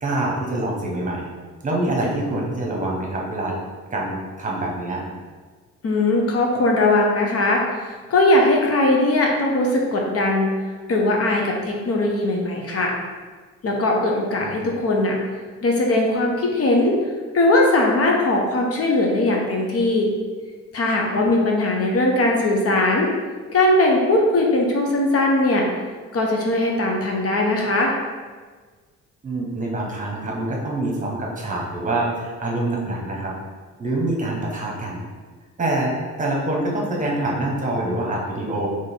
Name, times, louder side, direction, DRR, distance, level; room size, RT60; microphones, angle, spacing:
voice 1, 0.0-1.3 1.6-3.6 3.9-5.0 14.4-14.7 29.2-33.3 33.8-35.0 35.6-38.7, right 1 dB, 25° right, -2 dB, 1.1 m, -25 dB
voice 2, 5.8-7.6 8.1-10.5 10.9-12.9 13.6-15.2 15.6-16.9 17.3-20.1 20.7-23.1 23.5-25.7 26.1-27.9, left 2 dB, 50° left, 0 dB, 0.9 m, -19 dB
3.9 x 3.0 x 4.4 m, 1.5 s
cardioid pair, 90°, 30 cm